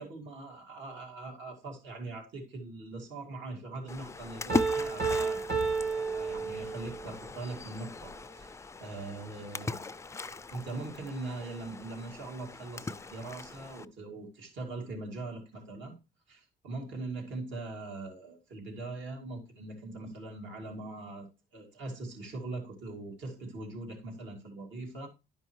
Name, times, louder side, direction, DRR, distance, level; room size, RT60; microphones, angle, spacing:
voice 1, 0.0-5.5 5.9-9.9 10.5-15.9 16.3-25.1, right 2 dB, 70° right, 2.3 m, -41 dB
Splash splatter, 3.9-13.8, left 3 dB, 15° left, 0.3 m, -39 dB
Piano, 4.5-7.1, right 4 dB, 50° right, 1.8 m, -31 dB
11.5 x 5.4 x 3.0 m
cardioid pair, 90°, 20 cm